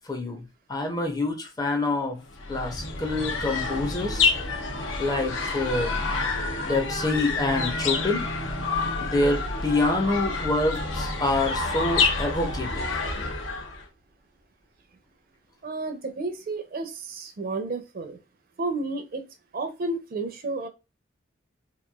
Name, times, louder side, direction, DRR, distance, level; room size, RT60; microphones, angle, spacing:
voice 1, 0.1-0.4 0.7-2.2 2.5-4.3 5.0-6.0 6.6-8.2 9.0-12.9, left 2 dB, 20° left, 0.5 m, -26 dB
sound 1, 2.3-13.8, left 4 dB, 85° left, 0.6 m, -28 dB
sound 2, 10.7-13.7 14.0-14.1, left 1 dB, 55° left, 1.2 m, -44 dB
voice 2, 15.6-18.2 18.6-19.2 19.5-20.7, right 3 dB, 50° right, 0.4 m, -31 dB
2.9 x 2.2 x 2.2 m
head